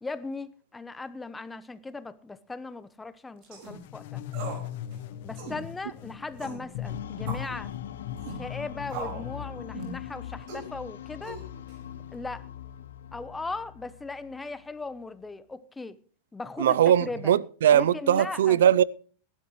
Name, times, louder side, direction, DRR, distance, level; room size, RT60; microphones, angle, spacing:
voice 1, 0.0-4.2 5.2-7.7 8.4-11.4 12.1-12.5 13.1-16.0 16.3-17.3 17.7-18.6, left 3 dB, 10° left, 0.8 m, -38 dB
sound 1, 3.4-3.8 4.3-4.7 4.9-5.0 5.4-5.6 6.4-6.6 7.3-7.5 8.2-8.4 8.9-9.3 9.7-10.0 10.5-10.7 11.2-11.7, right 4 dB, 50° right, 5.1 m, -39 dB
sound 2, 3.7-10.4, left 10 dB, 65° left, 1.0 m, -39 dB
sound 3, 6.8-15.0, left 10 dB, 90° left, 1.0 m, -42 dB
voice 2, 16.6-18.8, right 10 dB, 85° right, 0.5 m, -20 dB
18.5 x 12.0 x 3.1 m
supercardioid pair, 130°, 0 cm